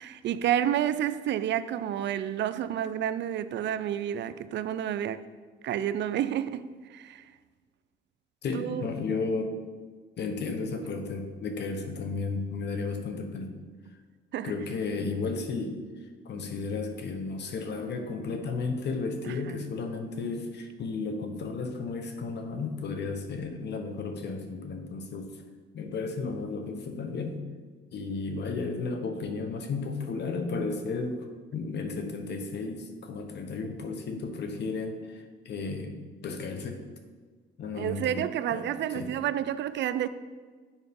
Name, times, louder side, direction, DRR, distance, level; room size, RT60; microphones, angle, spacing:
voice 1, 0.0-5.2 5.6-6.6 6.9-7.3 8.5-8.9 14.3-14.5 19.2-19.6 37.8-40.1, right 10 dB, 65° right, 13 dB, 0.4 m, -30 dB
voice 2, 8.4-9.5 10.2-13.6 14.4-15.8 16.2-25.3 25.7-27.4 27.9-31.3 31.5-36.0 36.2-36.8 37.6-38.7 38.9-39.1, left 4 dB, 60° left, 6 dB, 1.0 m, -33 dB
7.3 x 4.7 x 5.2 m, 1.5 s
cardioid pair, 90°, 20 cm